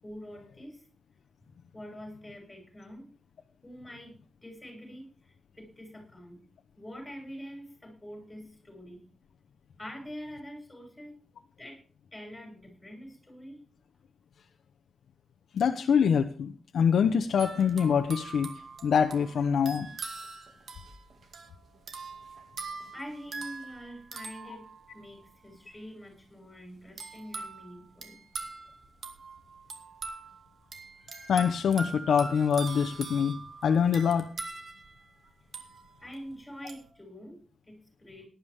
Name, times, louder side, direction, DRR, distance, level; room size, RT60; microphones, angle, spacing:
voice 1, 0.0-0.8 1.4-3.1 3.6-6.4 6.8-9.0 9.8-11.2 11.6-11.8 12.1-13.6 22.9-24.7 24.9-28.5 36.0-38.3, equal, 10° left, 1 dB, 6.9 m, -45 dB
voice 2, 15.5-18.5 18.8-19.9 31.2-33.4 33.6-34.3, left 7 dB, 80° left, 5 dB, 1.0 m, -25 dB
sound 1, 17.4-25.3 27.0-36.2 36.7-36.9, right 4 dB, 55° right, 2.2 m, -43 dB
18.0 x 11.5 x 3.6 m, 0.40 s
wide cardioid pair, 165°, 0 cm